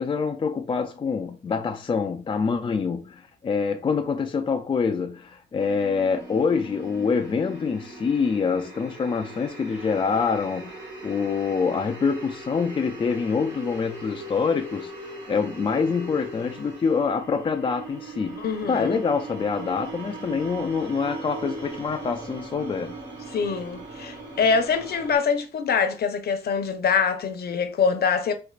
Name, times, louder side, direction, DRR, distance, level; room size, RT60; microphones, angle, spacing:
voice 1, 0.0-14.9 15.3-23.0, left 5 dB, 25° left, 0.3 m, -26 dB
sound 1, 5.6-25.2, right 2 dB, 60° right, 1.7 m, -40 dB
voice 2, 18.4-19.0 23.3-28.3, left 5 dB, 55° left, 0.7 m, -24 dB
4.3 x 2.4 x 2.4 m
cardioid pair, 90°, 20 cm